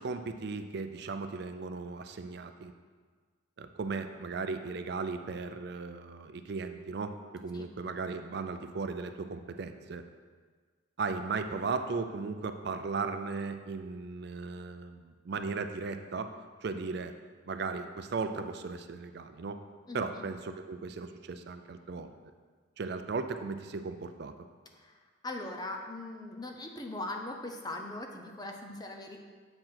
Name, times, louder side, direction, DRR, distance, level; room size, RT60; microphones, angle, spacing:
voice 1, 0.0-2.7 3.6-10.0 11.0-16.3 16.6-17.1 17.4-19.6 19.9-22.1 22.8-24.3, right 4 dB, 55° right, 8 dB, 0.4 m, -36 dB
voice 2, 25.2-29.2, left 2 dB, 20° left, 3 dB, 0.6 m, -40 dB
7.7 x 4.6 x 5.8 m, 1.5 s
head